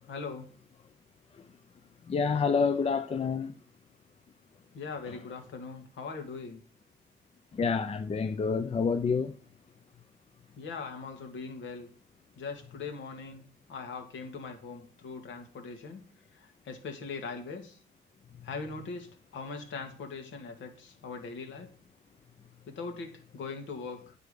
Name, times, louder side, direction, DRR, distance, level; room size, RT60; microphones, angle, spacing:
voice 1, 0.1-0.5 4.7-6.6 10.5-11.9 12.4-16.0 16.3-17.8 18.4-21.7 22.7-24.1, left 4 dB, 70° left, 1.9 m, -41 dB
voice 2, 2.1-3.5 7.5-9.3, left 5 dB, 30° left, 0.5 m, -28 dB
9.0 x 4.8 x 4.9 m
cardioid pair, 90°, 20 cm